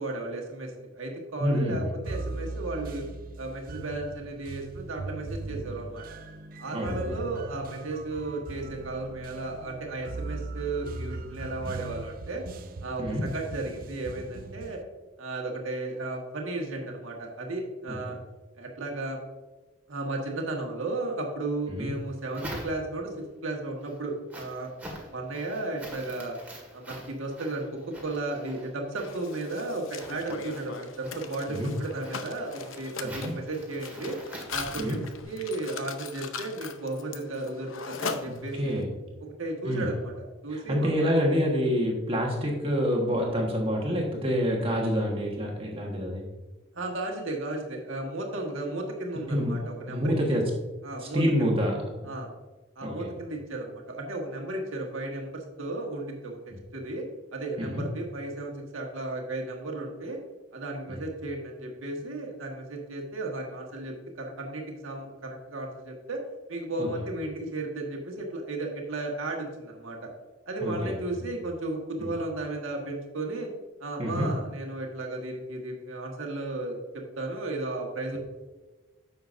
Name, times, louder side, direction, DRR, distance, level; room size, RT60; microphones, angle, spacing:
voice 1, 0.0-3.0 3.4-6.0 6.6-12.4 12.8-14.8 15.2-18.2 18.5-19.2 19.9-23.1 23.4-24.7 25.1-26.3 26.7-34.2 34.5-38.8 39.2-41.1 46.7-50.4 50.8-51.2 52.0-52.3 52.7-56.4 56.7-57.0 57.3-60.2 60.5-66.2 66.5-70.1 70.5-73.5 73.8-78.2, right 2 dB, 90° right, 1 dB, 1.6 m, -34 dB
voice 2, 1.4-1.9 6.7-7.2 13.0-13.2 17.9-18.0 21.8-21.9 31.5-31.7 33.2-33.3 34.8-35.0 38.6-38.9 39.6-39.9 40.5-46.2 49.3-49.5 49.9-50.4 51.0-51.8 52.8-53.1 57.6-57.8 60.9-61.0 66.8-66.9 70.6-70.9 72.0-72.1 74.0-74.3, equal, 30° right, -1 dB, 1.4 m, -27 dB
sound 1, 2.1-14.8, right 3 dB, 45° right, 0.5 m, -39 dB
sound 2, 21.8-23.2 23.6-35.2, right 1 dB, 10° right, 1.9 m, -46 dB
Mechanisms, 29.0-38.8, left 5 dB, 85° left, 0.7 m, -40 dB
10.0 x 7.0 x 2.6 m, 1.2 s
head